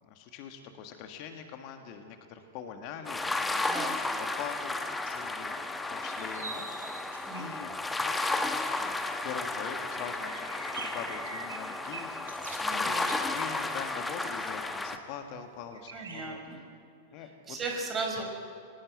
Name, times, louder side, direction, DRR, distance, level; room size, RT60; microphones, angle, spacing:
voice 1, 0.0-5.6 5.9-6.7 7.0-9.0 9.2-16.4 17.1-17.6 18.2-18.3, left 7 dB, 45° left, 6 dB, 1.8 m, -43 dB
sound 1, 3.0-15.0, left 2 dB, 10° left, 1.4 m, -33 dB
sound 2, 6.2-7.6 8.1-8.2 8.6-8.7 8.9-9.0 9.2-9.3 9.8-13.9 14.7-15.0 15.7-16.3, right 3 dB, 70° right, 3.3 m, -44 dB
voice 2, 7.2-7.6 12.6-13.0 15.9-16.6 17.2-18.2, right 3 dB, 25° right, 2 dB, 5.2 m, -37 dB
22.5 x 19.0 x 8.3 m, 2.4 s
figure-of-eight pair, 90°, 0 cm